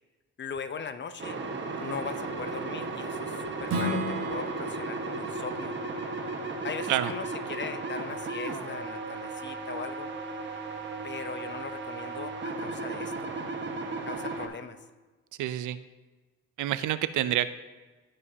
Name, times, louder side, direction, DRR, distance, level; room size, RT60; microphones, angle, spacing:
voice 1, 0.4-1.4 1.8-5.7 6.6-10.1 11.0-13.3 14.0-14.8, left 5 dB, 40° left, 10 dB, 0.7 m, -39 dB
sound 1, 1.2-14.5, right 3 dB, 40° right, 1.4 m, -35 dB
Strum, 3.7-8.9, right 1 dB, 55° right, 1.2 m, -37 dB
voice 2, 15.4-15.8 16.6-17.5, right 13 dB, 80° right, 13 dB, 0.5 m, -27 dB
15.5 x 5.5 x 2.8 m, 1.2 s
cardioid pair, 90°, 30 cm